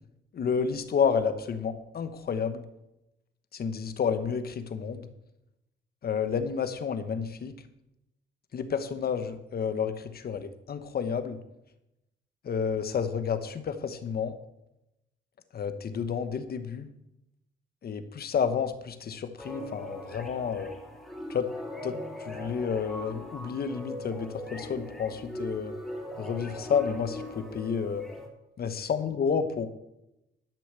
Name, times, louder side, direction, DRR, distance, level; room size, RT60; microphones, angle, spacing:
voice 1, 0.3-2.6 3.5-5.1 6.0-7.5 8.5-11.4 12.4-14.3 15.5-16.9 17.8-20.7 21.3-21.5 21.8-25.7 26.2-28.0 28.6-29.7, left 6 dB, 50° left, 10 dB, 1.2 m, -30 dB
sound 1, 19.4-28.3, left 1 dB, ahead, 3.4 m, -40 dB
12.0 x 6.4 x 6.8 m, 0.89 s
cardioid pair, 90°, 20 cm